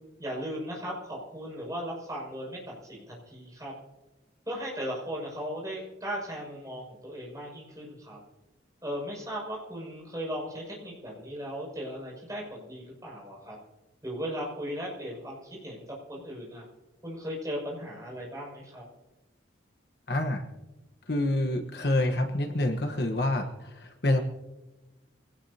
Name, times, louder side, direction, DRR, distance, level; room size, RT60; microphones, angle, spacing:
voice 1, 0.2-3.7 4.5-8.2 8.8-13.6 14.0-15.8 16.1-16.6 17.0-18.8, equal, 20° right, -3 dB, 6.5 m, -37 dB
voice 2, 20.1-20.4 21.1-24.2, left 1 dB, 55° left, 5 dB, 1.3 m, -27 dB
25.0 x 18.0 x 2.9 m, 1.1 s
head